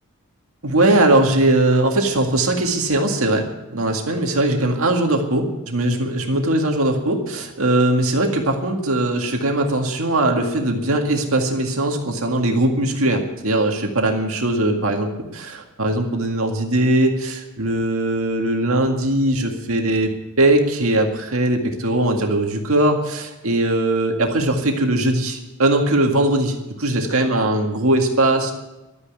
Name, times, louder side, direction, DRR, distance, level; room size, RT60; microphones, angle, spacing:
voice 1, 0.6-20.1 20.4-28.5, right 1 dB, 75° right, 3 dB, 2.0 m, -20 dB
13.0 x 9.7 x 9.5 m, 1.0 s
head